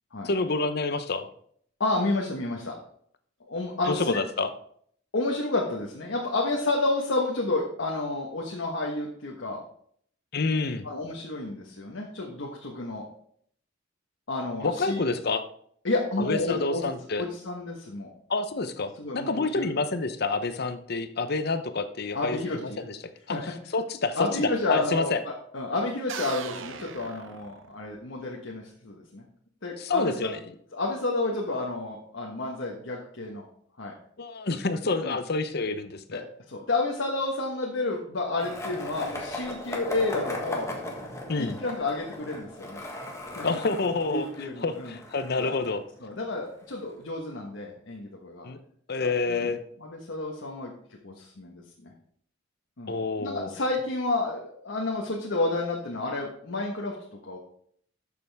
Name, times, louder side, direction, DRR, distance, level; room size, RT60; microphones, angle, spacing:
voice 1, 0.2-1.3 3.9-4.5 10.3-10.9 14.6-15.4 16.2-17.3 18.3-23.0 23.3-25.2 29.8-30.4 34.2-36.2 41.3-41.6 43.4-45.8 48.4-48.6 48.9-49.6 52.9-53.5, left 3 dB, 55° left, 10 dB, 0.8 m, -28 dB
voice 2, 1.8-2.7 3.5-4.2 5.1-9.6 10.8-13.0 14.3-15.0 15.8-16.8 17.2-18.1 19.0-19.7 22.1-22.8 23.3-23.4 24.2-29.2 29.6-30.3 30.7-33.5 33.8-33.9 35.0-35.2 36.1-40.7 41.1-42.8 43.3-43.5 44.1-45.0 45.4-45.5 46.0-48.5 49.0-49.5 49.8-51.9 52.8-57.4, left 2 dB, 75° left, -1 dB, 1.3 m, -30 dB
sound 1, 26.1-28.0, right 6 dB, 80° right, 0.7 m, -38 dB
Skateboard, 38.4-46.3, left 1 dB, 15° left, 1.6 m, -38 dB
12.0 x 6.9 x 3.5 m, 0.64 s
head